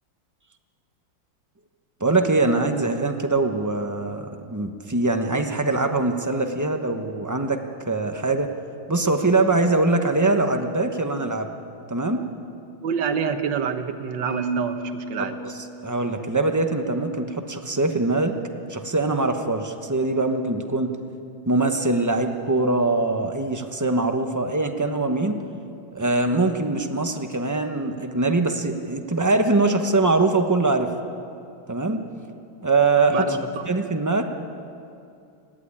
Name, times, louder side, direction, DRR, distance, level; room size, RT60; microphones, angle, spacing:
voice 1, 2.0-7.6 7.9-8.5 8.9-11.5 11.9-12.3 15.2-15.5 15.8-18.3 18.7-21.0 21.5-25.4 25.9-30.9 31.7-32.0 32.6-33.4 33.6-34.2, right 3 dB, 20° right, 5 dB, 0.5 m, -22 dB
voice 2, 12.8-15.4 33.1-33.7, right 7 dB, 65° right, 8 dB, 1.8 m, -27 dB
Marimba xylophone, 14.3-16.4, right 3 dB, 80° left, 5.9 m, -32 dB
19.0 x 15.5 x 9.8 m, 2.5 s
omnidirectional pair, 2.2 m